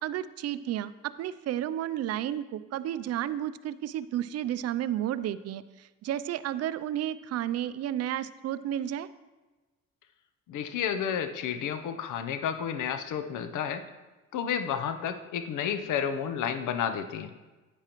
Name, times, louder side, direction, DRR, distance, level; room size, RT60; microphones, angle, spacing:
voice 1, 0.0-9.1, right 11 dB, 55° right, 14 dB, 0.4 m, -32 dB
voice 2, 10.5-13.8 14.3-17.3, left 8 dB, 80° left, 9 dB, 0.7 m, -31 dB
9.6 x 8.6 x 3.0 m, 1.2 s
cardioid pair, 90°, 30 cm